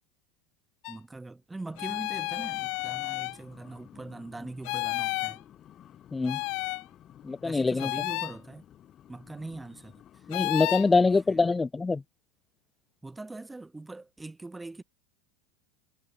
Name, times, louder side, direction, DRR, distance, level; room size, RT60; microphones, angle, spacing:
sound 1, 0.8-1.0 1.8-3.4 4.6-5.4 6.2-6.8 7.8-8.3 10.3-10.9, left 32 dB, 60° left, 0.8 m, -31 dB
voice 1, 0.9-5.4 7.4-8.6 9.1-9.9 10.9-11.5 13.0-14.8, right 2 dB, 10° right, 2.1 m, -42 dB
sound 2, 1.6-11.7, left 11 dB, 40° left, 7.7 m, -54 dB
voice 2, 7.2-7.9 10.3-12.0, left 3 dB, 15° left, 0.8 m, -24 dB
hypercardioid pair, 90°, 0 cm